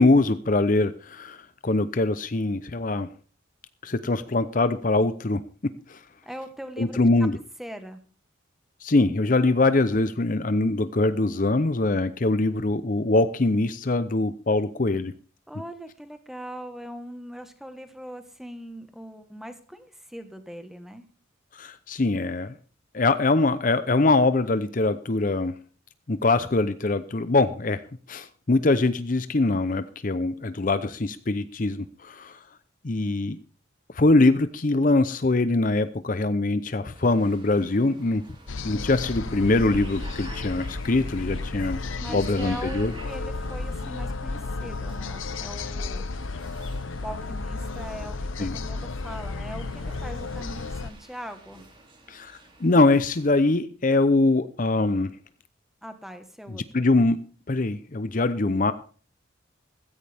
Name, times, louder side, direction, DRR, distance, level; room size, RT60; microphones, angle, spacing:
voice 1, 0.0-3.1 3.8-6.0 6.8-7.4 8.8-15.1 21.5-22.5 22.9-25.6 26.1-27.8 28.1-32.4 32.8-33.4 33.9-38.2 38.6-41.8 42.1-42.9 48.4-48.5 52.1-55.1 56.5-57.2 57.5-58.7, left 2 dB, 40° left, 12 dB, 0.7 m, -23 dB
voice 2, 6.2-7.3 7.6-8.0 15.5-21.0 42.0-46.0 47.0-51.6 55.8-56.6, equal, ahead, 8 dB, 1.3 m, -40 dB
sound 1, 36.9-53.5, right 2 dB, 25° right, 2.9 m, -49 dB
sound 2, 38.5-50.9, left 3 dB, 75° left, 0.8 m, -33 dB
16.0 x 15.0 x 3.5 m, 0.40 s
head